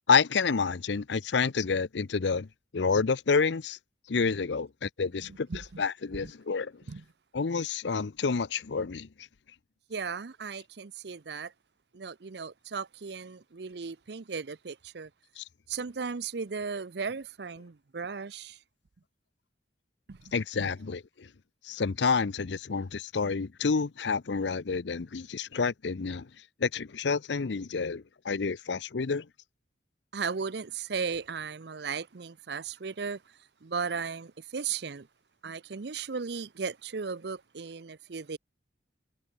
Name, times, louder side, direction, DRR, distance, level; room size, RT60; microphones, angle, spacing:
voice 1, 0.1-2.5 2.7-3.8 4.1-5.5 5.8-6.8 7.3-9.1 15.4-15.5 20.3-21.3 21.6-26.3 26.6-29.3, left 5 dB, 80° left, 0.6 m, -29 dB
voice 2, 5.2-5.8 6.2-6.3 6.9-7.0 9.9-11.5 11.9-15.1 15.7-18.6 20.1-20.3 20.6-20.7 30.1-35.1 35.4-38.4, right 5 dB, 70° right, 0.6 m, -36 dB
head